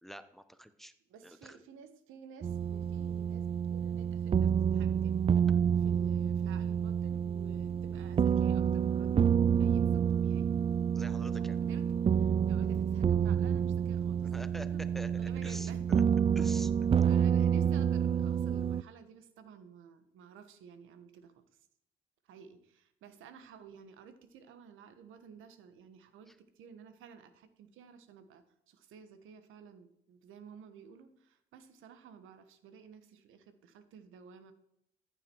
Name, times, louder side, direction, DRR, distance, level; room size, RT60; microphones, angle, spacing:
voice 1, 0.0-0.9 1.2-1.6 10.9-11.6 14.2-16.0 16.4-16.9 26.3-26.4, equal, ahead, 12 dB, 0.9 m, -47 dB
voice 2, 1.1-5.2 5.8-10.5 11.3-11.8 12.1-14.3 14.7-14.8 15.1-16.0 17.0-21.4 22.3-34.5, right 6 dB, 90° right, 10 dB, 1.4 m, -53 dB
sound 1, 2.4-18.8, right 8 dB, 30° right, 0.3 m, -29 dB
14.5 x 8.7 x 4.6 m, 0.80 s
cardioid pair, 90°, 20 cm